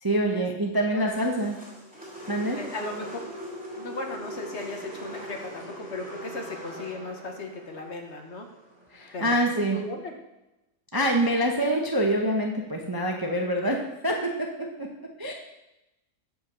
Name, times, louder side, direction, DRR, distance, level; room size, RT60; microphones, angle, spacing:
voice 1, 0.0-1.6 2.3-2.6 8.9-9.8 10.9-15.3, right 1 dB, 20° right, 1 dB, 0.6 m, -26 dB
sound 1, 1.1-9.3, equal, 5° right, 2.3 m, -41 dB
voice 2, 2.5-3.2 3.8-8.5 9.1-10.1, left 2 dB, 50° left, 3 dB, 1.2 m, -36 dB
8.2 x 4.9 x 6.7 m, 0.93 s
omnidirectional pair, 1.6 m